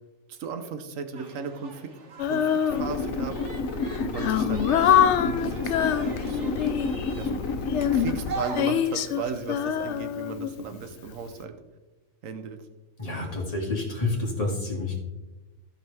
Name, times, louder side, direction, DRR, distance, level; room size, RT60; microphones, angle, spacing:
voice 1, 0.3-1.9 2.3-3.4 4.0-6.6 7.2-7.4 7.9-11.5 12.2-12.6, right 6 dB, 85° right, 8 dB, 1.2 m, -36 dB
sound 1, 1.1-9.0, right 3 dB, 65° right, 1.4 m, -42 dB
Female singing, 2.2-3.3 3.8-7.1 7.7-10.9, left 9 dB, 70° left, 0.8 m, -25 dB
sound 2, 2.7-8.3, left 4 dB, 90° left, 1.2 m, -30 dB
voice 2, 13.0-15.0, left 2 dB, 30° left, -2 dB, 2.1 m, -29 dB
15.5 x 5.3 x 3.4 m, 1.1 s
omnidirectional pair, 1.3 m